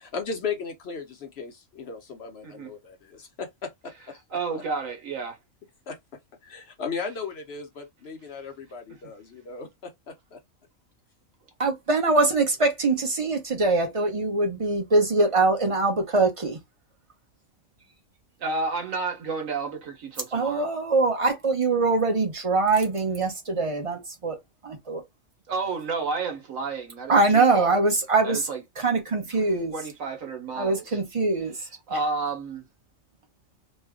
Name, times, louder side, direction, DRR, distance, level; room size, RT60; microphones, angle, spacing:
voice 1, 0.0-4.2 5.9-6.0 6.4-10.4, left 5 dB, 60° left, 0.9 m, -36 dB
voice 2, 4.3-5.4 8.9-9.0 18.4-20.7 25.5-27.8 28.2-28.6 29.7-31.0 31.9-32.7, right 4 dB, 85° right, 1.4 m, -31 dB
voice 3, 11.6-16.6 20.3-24.4 24.6-25.0 27.1-28.5 28.8-29.7 30.5-32.0, right 3 dB, 30° right, 0.9 m, -23 dB
3.2 x 2.2 x 3.5 m
omnidirectional pair, 1.4 m